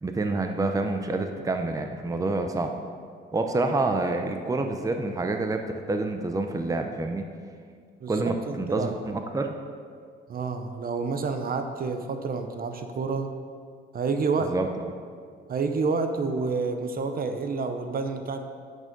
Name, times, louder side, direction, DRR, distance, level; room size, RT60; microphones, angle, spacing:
voice 1, 0.0-2.7 3.3-5.6 5.9-7.3 8.1-9.5 14.5-14.9, right 2 dB, 15° right, 5 dB, 0.7 m, -27 dB
voice 2, 8.0-9.0 10.3-13.3 13.9-14.5 15.5-18.4, right 4 dB, 50° right, 7 dB, 0.8 m, -29 dB
9.0 x 6.3 x 5.3 m, 2.1 s
cardioid pair, 90°, 20 cm